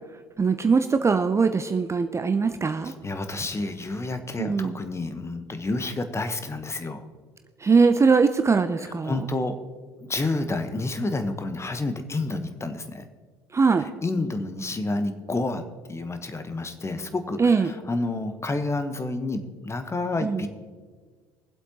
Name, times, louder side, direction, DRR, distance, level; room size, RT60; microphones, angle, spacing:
voice 1, 0.4-2.9 4.4-4.8 7.6-9.2 13.5-13.9 17.4-17.7 20.2-20.4, right 4 dB, 20° right, 9 dB, 0.6 m, -21 dB
voice 2, 2.8-7.0 8.8-9.5 10.0-13.1 13.8-15.6 15.9-20.5, left 2 dB, 20° left, 9 dB, 1.1 m, -29 dB
23.5 x 7.9 x 2.9 m, 1.5 s
hypercardioid pair, 65°, 14 cm